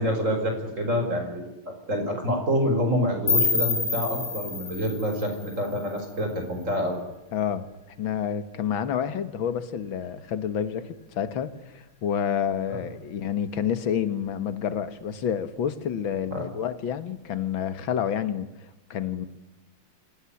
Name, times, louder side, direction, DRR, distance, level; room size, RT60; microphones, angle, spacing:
voice 1, 0.0-7.0 12.7-12.8 16.3-16.4, equal, 35° right, 5.2 m, -27 dB
sound 1, 3.3-6.2, left 4 dB, 85° left, 6.2 m, -28 dB
voice 2, 7.3-7.7 8.0-19.3, left 8 dB, 65° left, 2.2 m, -29 dB
26.0 x 18.0 x 10.0 m
omnidirectional pair, 2.4 m